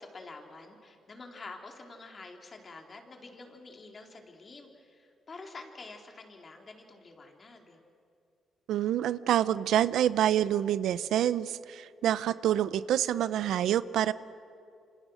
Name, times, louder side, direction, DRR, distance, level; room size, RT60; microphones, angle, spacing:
voice 1, 0.0-7.8, left 3 dB, 35° left, 3 dB, 3.5 m, -48 dB
voice 2, 8.7-14.1, right 11 dB, 80° right, 16 dB, 0.6 m, -27 dB
27.5 x 26.5 x 6.4 m, 2.5 s
cardioid pair, 90°, 0 cm